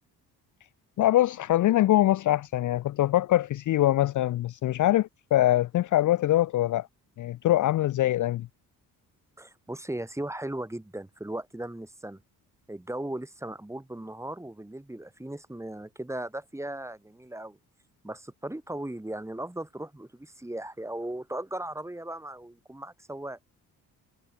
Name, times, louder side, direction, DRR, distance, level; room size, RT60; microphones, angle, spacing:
voice 1, 1.0-6.9 7.2-8.5, left 14 dB, 55° left, 0.5 m, -23 dB
voice 2, 9.4-12.2 12.7-17.6 18.0-23.4, right 1 dB, 5° right, 2.3 m, -37 dB
cardioid pair, 100°, 37 cm